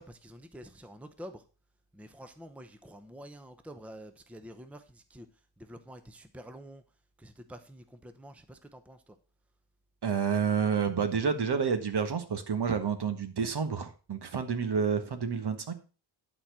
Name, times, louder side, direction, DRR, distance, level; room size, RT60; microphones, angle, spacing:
voice 1, 0.0-1.4 1.9-5.3 5.6-6.8 7.2-9.2, equal, 5° right, 9 dB, 0.8 m, -48 dB
voice 2, 10.0-15.7, right 6 dB, 55° right, 9 dB, 1.6 m, -29 dB
11.0 x 4.4 x 6.1 m, 0.35 s
wide cardioid pair, 100°, 47 cm